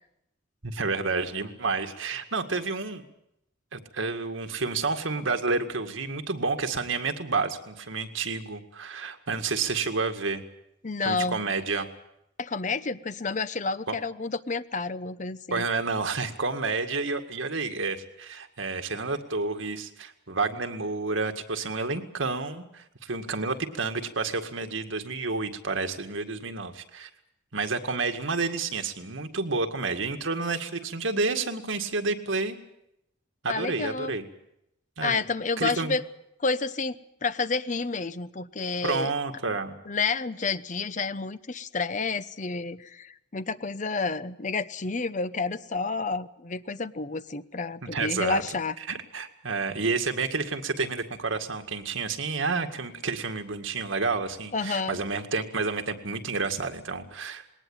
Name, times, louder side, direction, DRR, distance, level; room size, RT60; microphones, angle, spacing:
voice 1, 0.6-3.0 3.7-10.4 11.0-11.9 15.5-27.1 27.5-32.6 33.4-34.2 35.0-35.2 35.6-36.0 38.8-39.7 47.8-48.4 48.9-57.4, right 4 dB, 85° right, 6 dB, 2.0 m, -30 dB
voice 2, 10.8-11.4 12.4-15.6 33.5-34.1 35.0-36.0 36.4-39.1 39.4-39.6 39.9-48.8 54.5-55.0, left 4 dB, 40° left, 14 dB, 0.8 m, -30 dB
20.5 x 18.5 x 8.9 m, 0.80 s
head